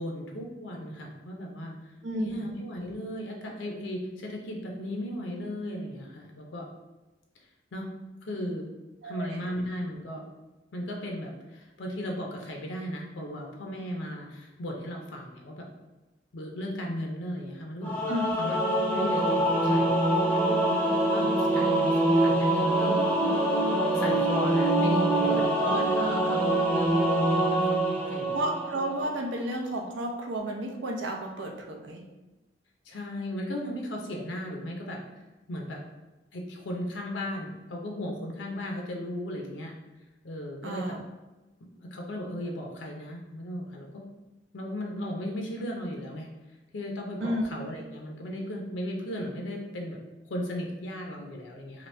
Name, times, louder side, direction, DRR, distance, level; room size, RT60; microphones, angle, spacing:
voice 1, 0.0-6.7 7.7-7.9 8.2-8.7 9.0-10.2 10.7-15.7 16.3-20.0 20.7-23.2 23.9-25.7 26.7-28.4 32.9-35.0 35.5-35.8 36.3-39.7 40.2-41.0 41.7-44.0 44.5-46.3 46.7-50.0 50.3-51.9, equal, 85° left, 1 dB, 0.5 m, -36 dB
voice 2, 2.0-2.4 9.0-9.4 18.1-18.4 25.3-26.6 28.3-32.0 40.6-41.0 47.2-47.5, right 1 dB, 85° right, 2 dB, 0.6 m, -32 dB
Singing / Musical instrument, 17.8-29.1, right 1 dB, 10° left, 0.5 m, -24 dB
2.9 x 2.6 x 3.2 m, 1.1 s
head